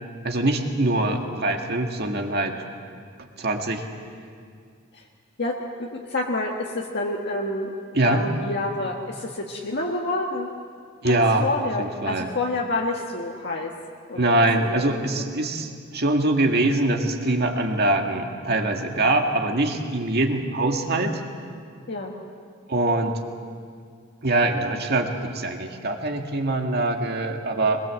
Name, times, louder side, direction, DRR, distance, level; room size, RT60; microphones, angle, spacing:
voice 1, 0.2-2.6 3.4-3.8 7.9-8.3 11.0-11.5 11.8-12.3 14.1-21.2 22.7-23.2 24.2-27.8, right 2 dB, 55° right, 3 dB, 2.0 m, -23 dB
voice 2, 5.4-7.7 8.0-10.5 11.0-13.7 14.1-15.0 21.9-22.1, left 2 dB, 55° left, -1 dB, 1.6 m, -28 dB
23.5 x 21.0 x 7.7 m, 2.1 s
head